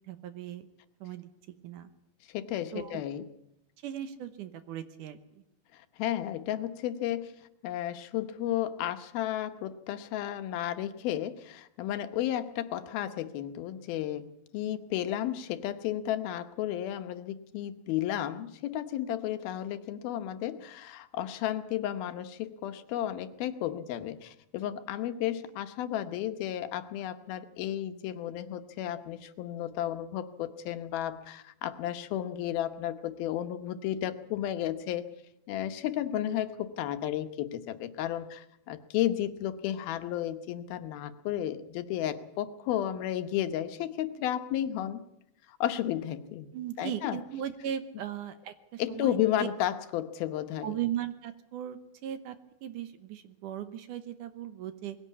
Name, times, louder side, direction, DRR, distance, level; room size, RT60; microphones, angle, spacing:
voice 1, 0.1-0.7 1.0-1.3 1.6-1.9 2.7-3.0 3.8-5.4 46.5-49.5 50.6-52.4 52.6-55.0, right 11 dB, 70° right, 11 dB, 2.3 m, -37 dB
voice 2, 2.3-3.3 5.7-7.3 7.6-35.1 35.5-45.0 45.5-46.5 46.8-47.2 48.8-50.8, left 12 dB, 85° left, 9 dB, 2.9 m, -33 dB
20.5 x 16.5 x 8.4 m, 0.78 s
omnidirectional pair, 4.2 m